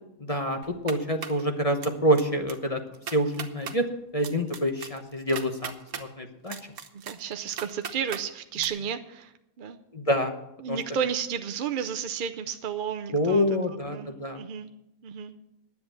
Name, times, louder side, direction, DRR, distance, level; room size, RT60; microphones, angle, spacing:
voice 1, 0.2-0.6 0.8-2.8 3.1-3.9 4.1-6.6 9.9-10.3 10.7-10.8 13.1-14.4, equal, 30° left, 4 dB, 1.0 m, -26 dB
sound 1, 0.6-1.4 1.8-2.2 2.5-2.6 2.9-3.8 4.2-6.1 6.5-8.2 8.6-8.7, right 7 dB, 90° right, 1.5 m, -38 dB
voice 2, 6.9-9.3 9.6-9.8 10.6-13.4 13.9-14.7 15.0-15.3, right 8 dB, 50° right, 7 dB, 0.6 m, -32 dB
10.5 x 8.2 x 9.0 m, 0.86 s
omnidirectional pair, 1.5 m